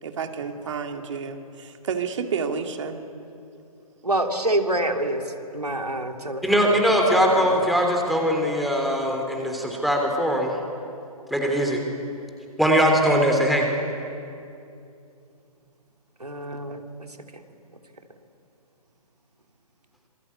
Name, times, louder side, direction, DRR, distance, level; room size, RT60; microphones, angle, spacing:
voice 1, 0.0-3.0, right 6 dB, 50° right, 5 dB, 2.5 m, -30 dB
voice 2, 4.0-5.2 5.5-6.7 7.1-7.6 16.2-16.8 17.3-17.4, right 1 dB, 90° right, 4 dB, 2.9 m, -26 dB
voice 3, 6.4-10.6 11.3-11.8 12.6-13.7, equal, ahead, 1 dB, 3.1 m, -21 dB
26.5 x 22.5 x 8.5 m, 2.6 s
figure-of-eight pair, 130°, 19 cm